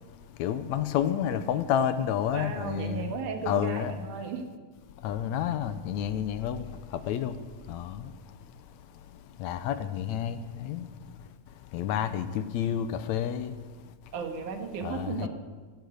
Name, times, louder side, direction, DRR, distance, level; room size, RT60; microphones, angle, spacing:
voice 1, 0.4-3.1 3.5-3.9 5.0-6.7 7.1-7.3 7.7-8.0 9.4-10.9 11.7-13.5 14.8-15.3, left 9 dB, 75° left, 11 dB, 1.9 m, -29 dB
voice 2, 2.3-4.5 14.1-15.3, right 5 dB, 85° right, 5 dB, 3.1 m, -35 dB
15.5 x 10.5 x 7.8 m, 1.4 s
omnidirectional pair, 3.4 m